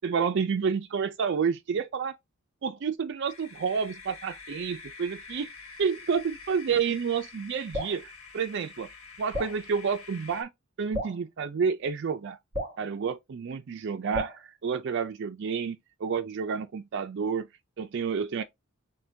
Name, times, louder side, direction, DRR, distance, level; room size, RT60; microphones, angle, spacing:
voice 1, 0.0-2.1 2.6-5.5 5.8-8.9 9.2-10.5 10.8-12.4 12.8-17.5 17.8-18.4, right 6 dB, 55° right, 0.4 m, -29 dB
sound 1, 3.3-10.4, left 5 dB, 90° left, 1.3 m, -47 dB
Drip, 7.7-8.0 9.3-9.6 10.9-11.2 12.5-12.8 14.1-14.4, left 1 dB, 35° right, 1.8 m, -33 dB
6.4 x 2.2 x 2.7 m
head